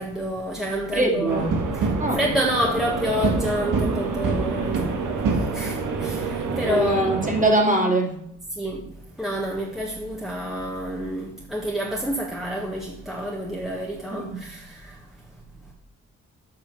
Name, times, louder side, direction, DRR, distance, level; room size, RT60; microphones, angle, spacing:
voice 1, 0.0-1.4 1.7-7.3 8.5-15.1, equal, ahead, -2 dB, 1.5 m, -29 dB
voice 2, 0.9-1.5 2.0-2.2 6.6-8.2 14.1-14.4, right 1 dB, 25° right, 1 dB, 2.4 m, -22 dB
sound 1, 1.3-7.4, right 4 dB, 65° right, 1.5 m, -26 dB
7.8 x 5.6 x 5.7 m, 0.73 s
cardioid pair, 65°, 34 cm